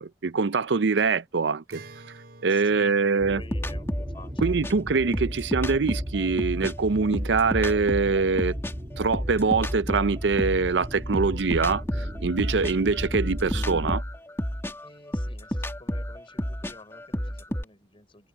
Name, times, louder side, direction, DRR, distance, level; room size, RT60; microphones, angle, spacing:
voice 1, 0.0-1.8 2.4-3.4 4.4-8.6 9.0-14.0, right 4 dB, 90° right, 0.6 m, -24 dB
Acoustic guitar, 1.7-7.2, right 2 dB, 65° right, 4.3 m, -52 dB
voice 2, 2.5-5.5 14.8-18.3, left 3 dB, 30° left, 4.6 m, -51 dB
sound 1, 3.2-14.0, equal, 25° right, 2.4 m, -36 dB
sound 2, 3.5-6.7 7.1-10.7 11.1-17.6, equal, 15° left, 2.3 m, -31 dB
head